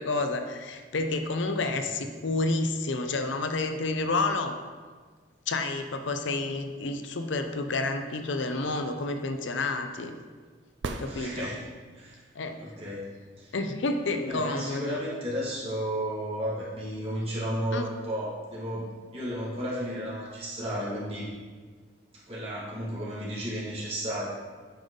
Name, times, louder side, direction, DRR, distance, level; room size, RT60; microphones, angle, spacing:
voice 1, 0.0-4.5 5.5-10.2 11.0-11.5 12.3-12.6 13.5-15.0 17.7-17.9, left 3 dB, 75° left, 7 dB, 0.6 m, -30 dB
sound 1, 10.8-12.0 15.8-15.9, right 3 dB, 75° right, 0.5 m, -37 dB
voice 2, 11.0-11.7 11.9-12.2 12.6-13.0 13.4-13.5 14.1-21.3 22.3-24.3, equal, 30° right, -8 dB, 2.3 m, -33 dB
8.9 x 5.4 x 3.9 m, 1.5 s
head